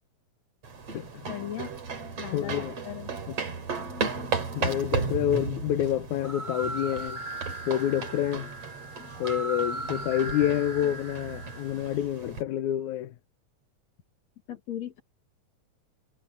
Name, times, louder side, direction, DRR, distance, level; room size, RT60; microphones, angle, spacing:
sound 1, 0.6-12.4, right 5 dB, 60° right, 4.3 m, -35 dB
voice 1, 1.3-1.7 2.2-3.1 14.5-15.0, left 11 dB, 65° left, 3.2 m, -37 dB
voice 2, 2.3-2.8 3.3-3.4 4.6-7.2 7.7-8.5 9.2-13.1, left 11 dB, 85° left, 2.3 m, -28 dB
sound 2, 6.1-11.9, right 2 dB, 20° right, 1.7 m, -38 dB
omnidirectional pair, 3.3 m